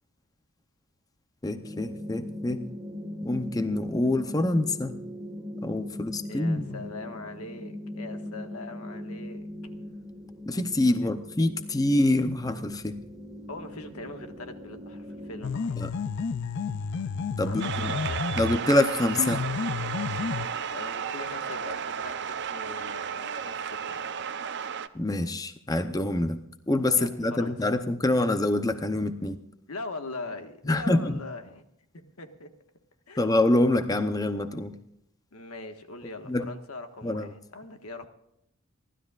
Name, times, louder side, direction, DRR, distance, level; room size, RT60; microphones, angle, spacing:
voice 1, 1.4-2.7 3.2-5.0 5.6-6.8 10.5-13.0 15.8-15.9 17.4-17.9 18.4-19.4 24.9-26.4 26.7-29.4 30.7-31.1 33.2-34.8 36.3-36.5 37.0-37.3, left 2 dB, 15° left, 9 dB, 0.7 m, -26 dB
sound 1, 1.6-15.5, left 1 dB, 15° right, 1.6 m, -40 dB
voice 2, 6.3-9.5 11.0-11.1 13.5-15.8 17.5-18.3 20.7-24.0 26.9-27.7 29.7-31.6 31.9-32.5 33.1-33.2 35.3-38.1, left 2 dB, 85° left, 6 dB, 1.6 m, -41 dB
sound 2, 15.4-18.7 19.2-20.5, left 5 dB, 55° left, 0.4 m, -31 dB
sound 3, 17.6-24.9, right 7 dB, 55° right, 0.6 m, -33 dB
29.0 x 12.5 x 2.5 m, 0.76 s
head